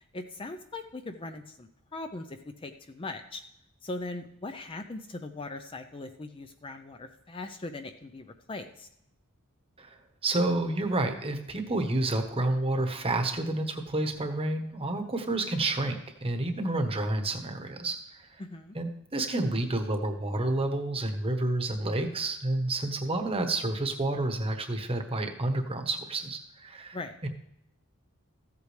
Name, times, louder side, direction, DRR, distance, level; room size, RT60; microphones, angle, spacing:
voice 1, 0.1-3.4 3.8-8.9 18.4-18.8 26.9-27.2, left 2 dB, 25° left, 7 dB, 0.5 m, -40 dB
voice 2, 9.8-18.4 18.7-27.0 27.2-27.3, right 2 dB, 25° right, 5 dB, 1.1 m, -30 dB
14.5 x 8.3 x 3.2 m, 0.79 s
head